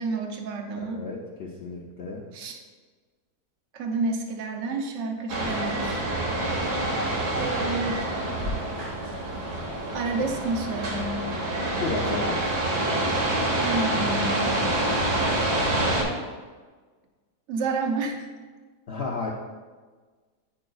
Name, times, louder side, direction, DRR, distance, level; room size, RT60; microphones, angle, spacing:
voice 1, 0.0-1.0 2.3-2.6 3.7-6.0 7.4-8.1 9.9-11.2 13.6-14.5 17.5-18.2, right 3 dB, 60° right, 4 dB, 0.9 m, -30 dB
voice 2, 0.8-2.2 11.8-12.6 18.9-19.3, left 3 dB, 70° left, -2 dB, 0.6 m, -32 dB
sound 1, 5.3-16.0, right 1 dB, 85° right, 1.8 m, -27 dB
9.8 x 5.0 x 2.3 m, 1.4 s
omnidirectional pair, 1.7 m